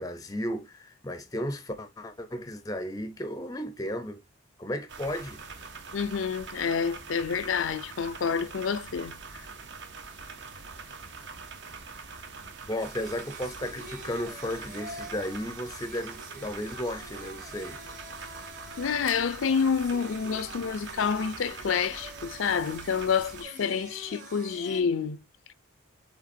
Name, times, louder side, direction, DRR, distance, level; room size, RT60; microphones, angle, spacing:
voice 1, 0.0-4.2 4.6-5.4 12.6-17.8, left 1 dB, 15° left, 0.5 m, -34 dB
sound 1, 4.9-23.4, right 4 dB, 55° right, 0.7 m, -44 dB
voice 2, 5.9-9.4 18.8-25.2, left 6 dB, 70° left, 0.4 m, -28 dB
Singing, 8.6-24.8, right 2 dB, 40° right, 1.2 m, -47 dB
5.0 x 3.7 x 2.6 m
head